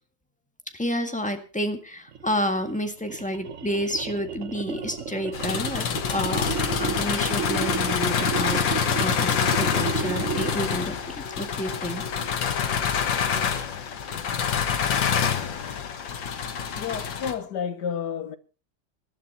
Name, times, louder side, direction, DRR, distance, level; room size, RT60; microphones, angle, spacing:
voice 1, 0.7-12.0, equal, 5° left, 1.6 m, -30 dB
sound 1, 2.1-10.8, right 7 dB, 50° right, 1.0 m, -33 dB
sound 2, 4.5-13.9, left 1 dB, 25° right, 1.9 m, -46 dB
sound 3, 5.3-17.3, left 7 dB, 85° left, 2.1 m, -26 dB
voice 2, 16.8-18.4, left 7 dB, 65° left, 1.6 m, -30 dB
18.5 x 12.0 x 4.2 m
omnidirectional pair, 2.0 m